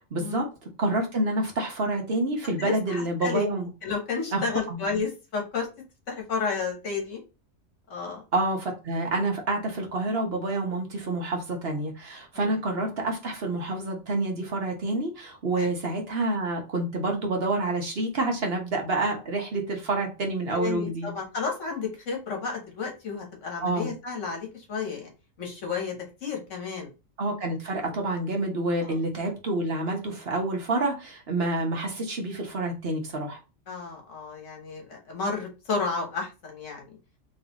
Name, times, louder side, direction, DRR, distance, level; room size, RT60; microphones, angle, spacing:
voice 1, 0.1-0.5 0.8-3.7 4.3-4.4 4.7-4.8 8.3-21.1 23.6-23.9 27.2-33.4, right 2 dB, 50° right, 2 dB, 1.2 m, -28 dB
voice 2, 2.6-3.5 3.8-5.7 6.1-7.2 7.9-8.2 12.3-12.5 15.6-15.7 20.5-25.1 25.4-26.9 27.9-28.0 28.8-29.0 33.7-37.0, left 5 dB, 70° left, 1 dB, 1.5 m, -32 dB
3.9 x 3.2 x 2.9 m, 0.29 s
omnidirectional pair, 1.4 m